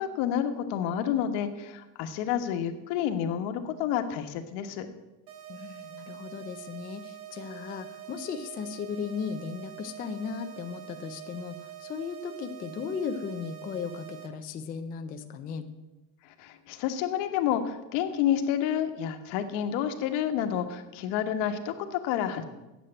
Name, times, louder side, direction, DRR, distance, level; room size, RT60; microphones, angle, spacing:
voice 1, 0.0-4.9 16.2-22.4, left 9 dB, 80° left, 7 dB, 1.4 m, -29 dB
sound 1, 5.3-14.3, right 12 dB, 85° right, 1.6 m, -45 dB
voice 2, 5.5-15.7, left 6 dB, 20° left, 7 dB, 0.3 m, -36 dB
9.4 x 7.4 x 8.8 m, 1.0 s
cardioid pair, 175°, 45 cm